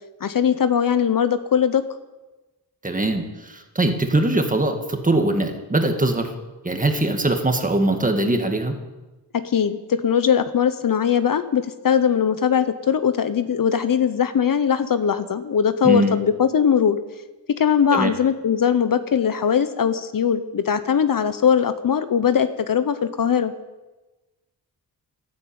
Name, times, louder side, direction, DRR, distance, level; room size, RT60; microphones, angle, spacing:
voice 1, 0.2-1.8 9.3-17.0 17.6-23.5, left 8 dB, 55° left, 11 dB, 0.9 m, -20 dB
voice 2, 2.8-6.3 6.6-8.8 15.8-16.2 17.9-18.1, right 2 dB, 20° right, 5 dB, 1.8 m, -21 dB
13.0 x 12.5 x 8.7 m, 1.1 s
wide cardioid pair, 125°, 41 cm